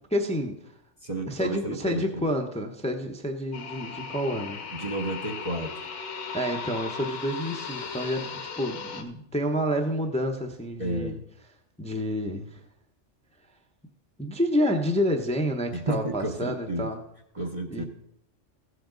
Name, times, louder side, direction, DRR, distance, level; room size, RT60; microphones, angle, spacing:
voice 1, 0.1-0.6 1.3-4.6 6.3-11.2 11.8-12.6 14.2-17.0 17.7-17.8, equal, 5° left, 3 dB, 0.7 m, -29 dB
voice 2, 1.0-2.2 4.7-5.7 10.8-11.2 15.7-16.9 17.3-17.8, right 1 dB, 30° right, 2 dB, 0.9 m, -31 dB
sound 1, 3.5-9.0, left 5 dB, 55° left, 1.2 m, -37 dB
15.5 x 7.7 x 3.9 m, 0.77 s
omnidirectional pair, 1.3 m